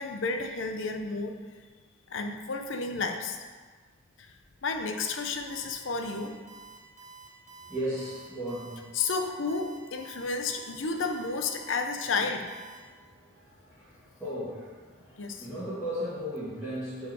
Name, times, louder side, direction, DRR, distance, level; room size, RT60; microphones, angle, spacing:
voice 1, 0.0-1.3 2.1-3.4 4.2-6.4 8.9-12.5 15.2-15.5, left 4 dB, 65° left, 5 dB, 0.6 m, -32 dB
Alarm, 5.0-12.8, right 5 dB, 35° right, 0.8 m, -49 dB
voice 2, 7.7-9.0 12.8-17.1, equal, ahead, -15 dB, 1.9 m, -36 dB
5.4 x 4.8 x 4.7 m, 1.4 s
head